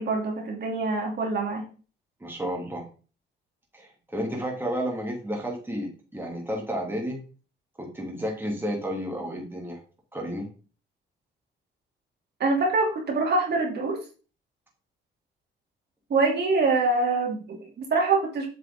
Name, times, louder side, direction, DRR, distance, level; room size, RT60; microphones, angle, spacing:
voice 1, 0.0-1.6 12.4-14.0 16.1-18.5, right 3 dB, 55° right, 0 dB, 3.0 m, -25 dB
voice 2, 2.2-2.9 3.7-7.2 7.8-9.8 10.1-10.5, equal, 10° right, 0 dB, 2.7 m, -31 dB
7.9 x 5.8 x 3.7 m, 0.36 s
cardioid pair, 90°, 20 cm